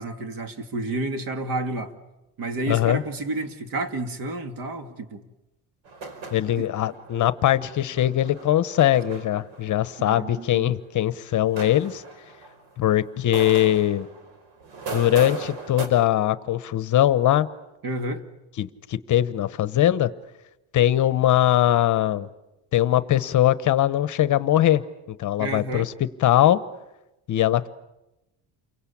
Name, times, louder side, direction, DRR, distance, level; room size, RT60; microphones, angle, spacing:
voice 1, 0.0-1.9 2.4-5.2 6.6-6.7 10.0-10.7 17.8-18.2 25.4-25.9, right 2 dB, 50° right, 2.6 m, -30 dB
voice 2, 2.7-3.0 6.3-12.0 12.8-14.1 14.9-17.5 18.6-20.1 20.7-22.3 22.7-24.8 25.1-26.6 27.3-27.7, left 12 dB, 45° left, 1.0 m, -21 dB
sound 1, 5.9-10.9 11.3-13.0 13.3-15.9, right 4 dB, 80° right, 5.0 m, -38 dB
29.5 x 23.5 x 8.6 m
cardioid pair, 155°, 43 cm